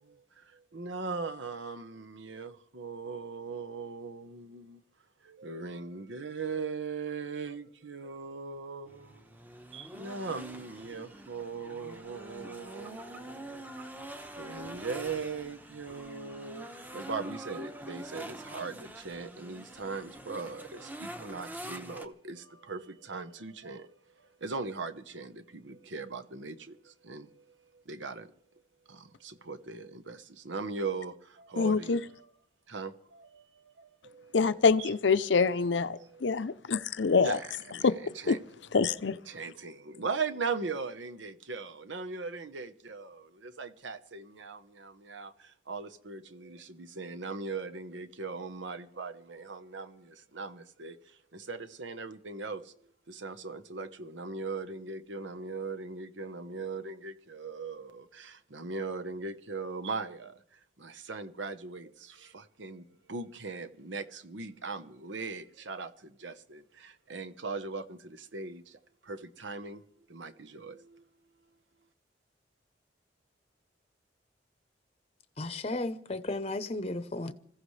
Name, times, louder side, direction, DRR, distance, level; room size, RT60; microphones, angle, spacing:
voice 1, 0.0-4.8 5.2-9.4 9.7-13.7 14.4-28.3 28.9-32.3 32.7-34.9 35.4-35.6 36.0-36.5 37.2-38.4 39.3-71.1, right 4 dB, 85° right, 1.0 m, -40 dB
sound 1, 8.9-22.1, right 1 dB, 10° right, 1.0 m, -45 dB
voice 2, 31.6-32.0 34.3-37.4 37.8-37.9 38.3-38.4 38.7-39.2, left 4 dB, 75° left, 0.6 m, -25 dB
voice 3, 75.4-77.3, left 2 dB, 35° left, 0.8 m, -34 dB
26.5 x 15.0 x 3.3 m
head